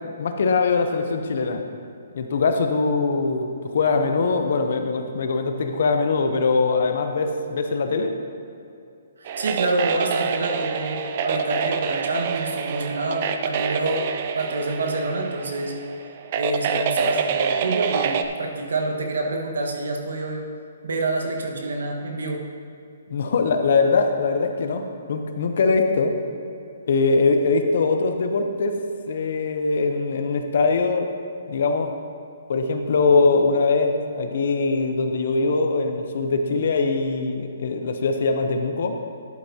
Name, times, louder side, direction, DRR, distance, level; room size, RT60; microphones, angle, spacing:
voice 1, 0.2-1.6 2.1-8.2 23.1-26.1 26.9-28.7 29.1-31.1 31.5-31.9 32.5-39.0, left 4 dB, 50° left, 6 dB, 0.7 m, -22 dB
sound 1, 9.2-18.3, right 6 dB, 30° right, 0.4 m, -26 dB
voice 2, 9.2-15.7 16.4-20.5 20.8-22.4, right 2 dB, 85° right, 1 dB, 1.4 m, -27 dB
11.0 x 8.2 x 2.8 m, 2.6 s
hypercardioid pair, 175°, 0 cm